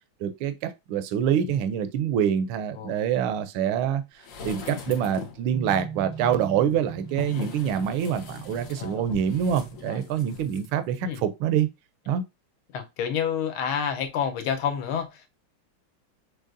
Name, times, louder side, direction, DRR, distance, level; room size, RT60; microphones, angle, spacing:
voice 1, 0.2-4.0 4.4-11.7 12.1-12.2, right 9 dB, 75° right, 1.4 m, -26 dB
voice 2, 2.8-3.1 4.6-4.8 7.3-7.5 8.8-9.1 9.8-10.0 11.0-11.2 12.7-15.3, left 8 dB, 80° left, 1.6 m, -30 dB
sound 1, 4.2-5.5 6.1-10.7 11.0-11.1, left 5 dB, 60° left, 0.9 m, -40 dB
sound 2, 5.5-11.1, right 5 dB, 55° right, 0.7 m, -41 dB
6.4 x 3.1 x 2.5 m
omnidirectional pair, 2.3 m